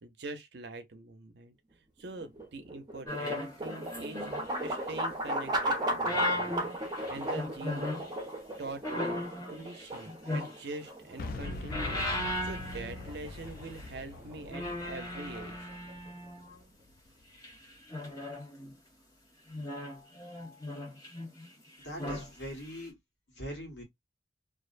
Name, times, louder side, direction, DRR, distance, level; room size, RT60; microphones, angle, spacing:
voice 1, 0.0-4.3 4.6-6.7 7.1-7.9 8.6-12.1 12.4-15.7, right 3 dB, 65° right, 0.6 m, -44 dB
sound 1, 2.0-16.1, right 1 dB, 25° right, 0.7 m, -37 dB
sound 2, 3.1-4.8 5.8-8.1 8.8-10.9 11.3-13.4 13.7-13.9 14.5-16.6 17.4-18.7 19.5-21.5 21.8-22.3 22.7-22.8, left 1 dB, 20° left, 1.0 m, -37 dB
Boom, 11.2-17.1, left 3 dB, 55° left, 0.3 m, -43 dB
voice 2, 21.8-22.9 23.3-23.8, equal, 75° left, 1.3 m, -41 dB
2.5 x 2.1 x 2.5 m
head